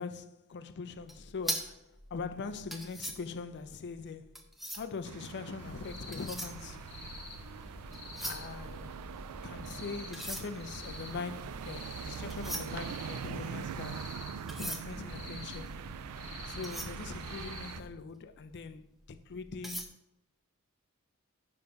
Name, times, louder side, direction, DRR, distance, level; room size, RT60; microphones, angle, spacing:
voice 1, 0.0-4.4 4.8-6.9 8.2-9.0 9.4-14.3 14.6-15.7 16.4-19.9, left 4 dB, 50° left, 0.5 m, -42 dB
sound 1, 1.0-5.1 5.9-7.5 7.8-9.6 10.0-18.0 18.5-18.6 19.1-19.9, right 1 dB, ahead, 0.6 m, -42 dB
sound 2, 5.0-17.8, right 8 dB, 85° right, 0.3 m, -43 dB
sound 3, 5.6-17.9, left 2 dB, 30° left, 1.3 m, -47 dB
5.8 x 5.4 x 5.2 m
head